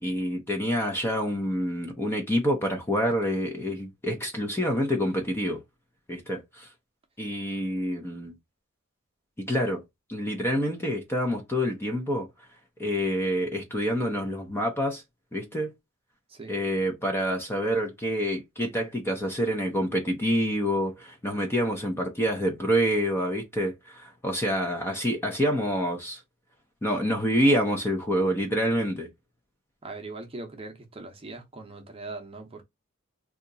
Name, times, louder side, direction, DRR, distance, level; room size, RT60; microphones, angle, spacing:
voice 1, 0.0-5.6 6.1-6.7 7.2-8.3 9.4-9.8 10.1-12.3 12.8-15.0 15.3-15.7 16.5-26.2 26.8-29.1, equal, 10° left, 0.6 m, -27 dB
voice 2, 16.3-16.6 29.8-32.6, right 3 dB, 25° right, 0.7 m, -40 dB
2.8 x 2.4 x 3.9 m
head